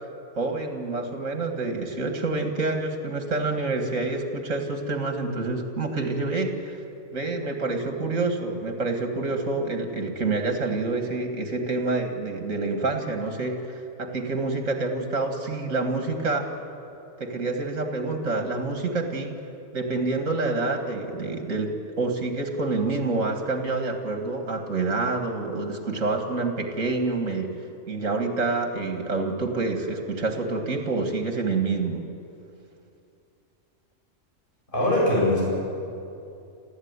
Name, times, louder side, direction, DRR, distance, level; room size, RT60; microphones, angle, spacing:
voice 1, 0.4-6.8 7.1-16.5 17.2-19.4 19.7-27.5 27.9-32.0, right 3 dB, 75° right, 5 dB, 2.4 m, -27 dB
voice 2, 34.7-35.4, left 1 dB, 40° left, -6 dB, 8.4 m, -21 dB
27.5 x 14.5 x 9.7 m, 2.6 s
omnidirectional pair, 1.3 m